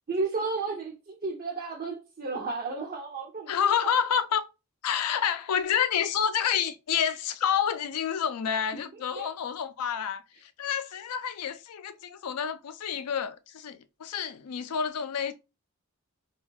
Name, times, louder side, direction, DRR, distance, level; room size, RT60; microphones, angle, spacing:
voice 1, 0.1-3.5 3.8-3.9 8.9-9.3, right 3 dB, 40° right, 0.5 m, -33 dB
voice 2, 3.5-4.4 4.8-15.3, left 8 dB, 85° left, 0.4 m, -29 dB
2.5 x 2.3 x 3.9 m
head